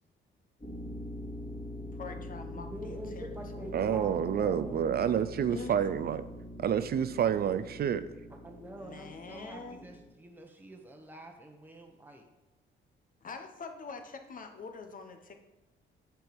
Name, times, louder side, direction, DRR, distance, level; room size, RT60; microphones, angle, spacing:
sound 1, 0.6-10.1, left 1 dB, 25° left, 2.5 m, -43 dB
voice 1, 1.9-4.0 5.5-5.7 8.7-9.9 13.2-15.4, left 4 dB, 45° left, 6 dB, 1.0 m, -45 dB
voice 2, 2.5-5.2 8.3-12.3, right 1 dB, 10° right, 2 dB, 1.1 m, -46 dB
voice 3, 3.7-6.2 6.6-8.1, right 8 dB, 50° right, 13 dB, 0.4 m, -29 dB
7.8 x 4.6 x 5.3 m, 1.0 s
cardioid pair, 90°, 20 cm